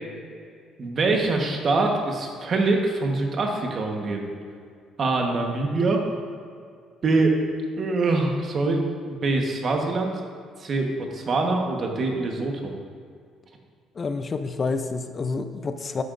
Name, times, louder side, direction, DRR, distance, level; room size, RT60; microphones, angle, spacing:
voice 1, 0.8-4.3 5.0-6.0 7.0-7.4 7.8-10.1 10.6-12.7, right 3 dB, 40° right, 2 dB, 1.3 m, -24 dB
voice 2, 14.0-16.0, left 4 dB, 30° left, 9 dB, 0.6 m, -28 dB
12.5 x 9.0 x 2.6 m, 2.2 s
cardioid pair, 130°, 0 cm